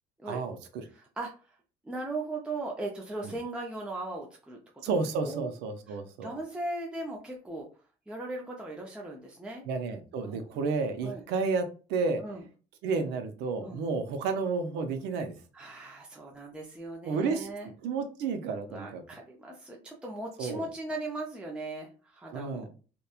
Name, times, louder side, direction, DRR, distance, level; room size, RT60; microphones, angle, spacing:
voice 1, 0.3-0.8 3.2-3.3 4.8-6.3 9.7-12.2 12.8-15.4 17.0-17.5 17.8-19.0 20.4-20.7 22.3-22.7, right 4 dB, 85° right, 7 dB, 0.5 m, -31 dB
voice 2, 0.9-1.6 1.8-4.9 5.2-5.5 5.9-7.7 8.1-9.6 10.2-10.4 11.0-11.2 12.2-12.4 13.6-13.8 15.5-17.7 18.7-22.8, right 2 dB, 5° right, -1 dB, 0.4 m, -38 dB
2.9 x 2.1 x 2.3 m, 0.36 s
cardioid pair, 110°, 17 cm